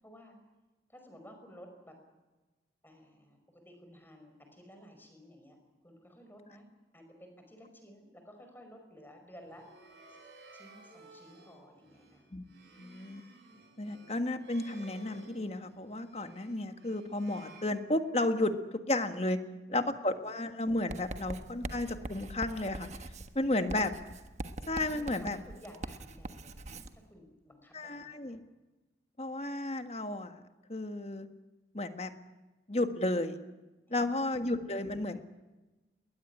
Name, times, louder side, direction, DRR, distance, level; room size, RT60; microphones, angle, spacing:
voice 1, 0.0-0.4 0.9-2.0 2.8-5.6 5.8-6.7 6.9-9.6 10.1-10.2 10.5-12.3 21.1-21.2 23.4-23.7 24.8-28.4 33.9-34.3, equal, 10° left, 5 dB, 5.4 m, -54 dB
sound 1, 9.4-18.4, right 2 dB, 80° right, 8.0 m, -56 dB
voice 2, 12.8-13.2 13.8-18.6 18.8-19.4 19.7-22.9 23.3-23.9 24.7-25.4 27.7-28.4 29.2-30.4 30.7-31.3 31.7-32.1 32.7-33.4 33.9-35.2, left 1 dB, 35° left, 8 dB, 1.5 m, -33 dB
Writing, 20.9-27.0, right 1 dB, 40° right, 1.4 m, -43 dB
21.0 x 20.0 x 9.9 m, 1.1 s
head